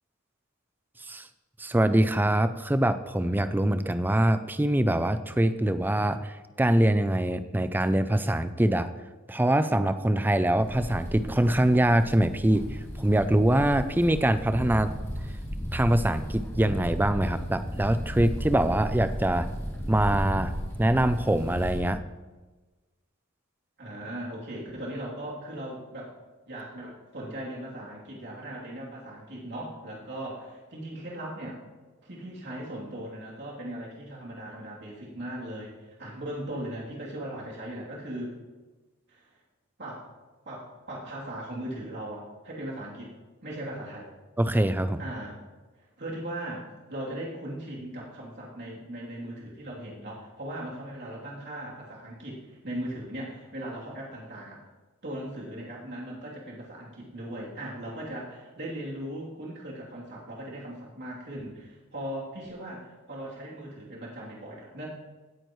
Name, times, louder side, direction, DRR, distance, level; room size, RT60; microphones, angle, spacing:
voice 1, 1.6-8.9 9.3-14.9 15.7-19.5 19.9-20.5 20.8-22.0 44.4-45.0, right 1 dB, 10° right, 11 dB, 0.4 m, -24 dB
sound 1, 10.6-21.8, equal, 15° left, 2.5 m, -35 dB
voice 2, 23.8-26.1 26.5-31.6 32.0-38.3 39.1-39.3 39.8-40.1 40.4-43.1 43.4-44.1 45.0-45.4 46.0-54.6 55.0-64.9, right 1 dB, 55° right, -5 dB, 3.2 m, -38 dB
17.0 x 9.0 x 3.2 m, 1.3 s
head